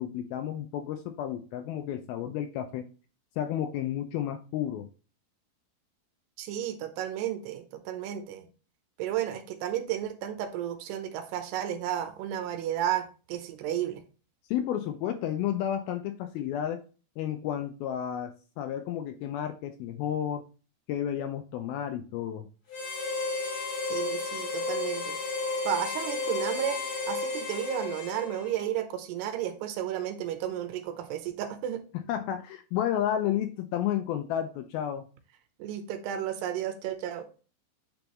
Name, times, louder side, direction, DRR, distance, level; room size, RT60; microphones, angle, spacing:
voice 1, 0.0-2.9 3.4-4.9 14.5-16.8 17.2-20.4 20.9-22.5 32.1-35.1, left 10 dB, 85° left, 6 dB, 2.2 m, -31 dB
voice 2, 6.4-8.5 9.0-14.0 23.9-25.2 25.7-26.8 27.1-31.8 35.6-37.3, right 11 dB, 80° right, 7 dB, 2.9 m, -33 dB
Harmonica, 22.7-28.7, left 3 dB, 45° left, 3.0 m, -33 dB
8.7 x 4.5 x 3.0 m, 0.36 s
omnidirectional pair, 4.8 m